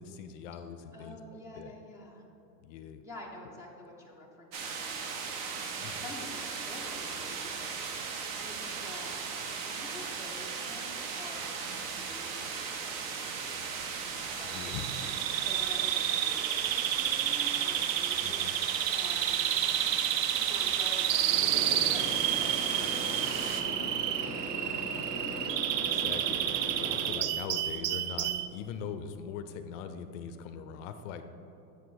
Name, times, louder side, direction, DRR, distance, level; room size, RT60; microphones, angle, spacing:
voice 1, 0.0-1.7 2.6-3.0 5.8-6.0 14.4-14.9 18.2-18.6 25.8-31.2, left 7 dB, 50° left, 9 dB, 0.5 m, -42 dB
voice 2, 0.9-2.2 3.0-5.4 5.9-7.9 8.4-13.8 14.4-14.5 14.8-18.4 18.9-19.4 20.2-24.0 24.3-24.8, left 2 dB, 5° right, -3 dB, 0.4 m, -48 dB
sound 1, 4.5-23.6, right 5 dB, 45° right, 0.7 m, -37 dB
Bird vocalization bird call bird song, 14.5-28.5, right 11 dB, 85° right, 0.6 m, -30 dB
sound 2, 21.3-27.1, equal, 25° right, 1.2 m, -39 dB
8.1 x 4.7 x 4.0 m, 2.9 s
supercardioid pair, 130°, 48 cm